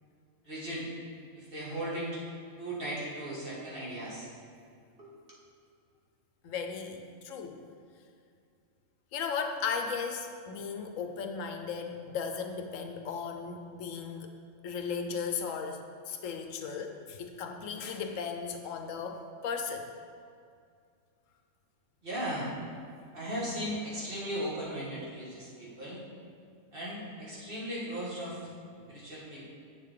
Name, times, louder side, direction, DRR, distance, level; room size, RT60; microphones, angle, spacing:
voice 1, 0.4-0.9 1.4-2.2 2.6-4.3 5.0-5.1 22.0-22.5 23.1-26.0 26.7-28.4 28.9-29.4, equal, 45° right, -7 dB, 2.2 m, -37 dB
voice 2, 6.4-7.0 7.2-7.6 9.1-14.3 14.6-15.8 16.1-19.9, left 6 dB, 80° left, 5 dB, 1.1 m, -36 dB
8.5 x 6.6 x 3.6 m, 2.3 s
omnidirectional pair, 1.3 m